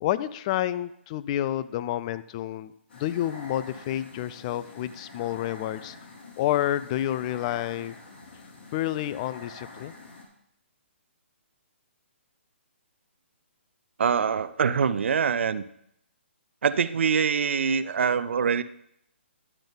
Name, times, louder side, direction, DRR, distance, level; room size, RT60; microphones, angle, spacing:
voice 1, 0.0-5.9 6.4-8.0 8.7-9.9, left 12 dB, 30° left, 15 dB, 0.4 m, -29 dB
sound 1, 2.9-10.3, left 3 dB, 55° left, 3.1 m, -46 dB
voice 2, 14.0-15.6 16.6-18.6, right 6 dB, 70° right, 15 dB, 0.5 m, -24 dB
11.0 x 6.9 x 3.9 m, 0.74 s
hypercardioid pair, 145°, 7 cm